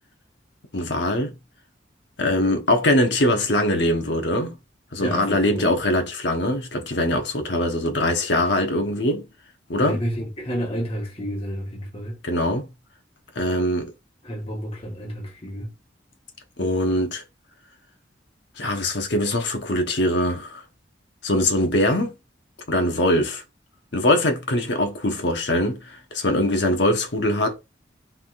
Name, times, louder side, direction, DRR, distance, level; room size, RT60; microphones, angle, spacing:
voice 1, 0.7-1.4 2.2-4.6 4.9-9.3 9.7-10.0 12.2-12.7 13.3-13.9 16.6-17.2 18.5-20.6 21.2-22.1 22.7-23.4 23.9-27.5, left 1 dB, 70° left, 1.1 m, -22 dB
voice 2, 5.0-5.7 9.8-12.2 14.2-15.7, equal, 30° left, 1.2 m, -30 dB
5.7 x 3.5 x 2.5 m
head